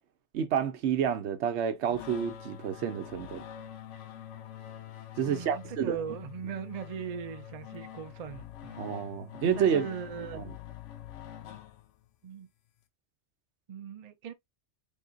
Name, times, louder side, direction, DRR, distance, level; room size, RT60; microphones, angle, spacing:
voice 1, 0.3-3.5 5.2-6.0 8.8-9.9 10.3-10.4, right 8 dB, 70° right, 0.9 m, -29 dB
sound 1, 1.9-12.2, left 10 dB, 90° left, 1.0 m, -45 dB
voice 2, 5.3-8.8 9.4-10.4 12.2-12.5 13.7-14.3, right 8 dB, 55° right, 0.4 m, -39 dB
3.8 x 3.7 x 2.3 m
omnidirectional pair, 1.2 m